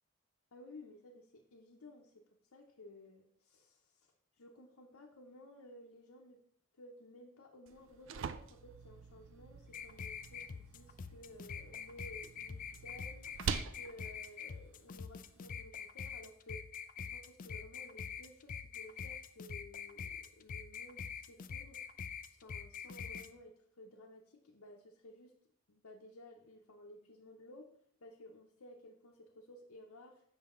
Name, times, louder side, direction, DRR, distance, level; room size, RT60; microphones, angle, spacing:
voice 1, 0.5-2.2 2.5-4.1 4.4-6.4 6.8-13.3 13.7-16.6 17.0-21.8 22.3-25.4 25.7-30.2, left 1 dB, 85° left, -1 dB, 0.8 m, -56 dB
sound 1, 7.7-15.6, right 7 dB, 60° right, 0.4 m, -46 dB
sound 2, 9.7-23.3, left 7 dB, 35° left, 0.3 m, -45 dB
7.3 x 5.5 x 3.7 m, 0.66 s
head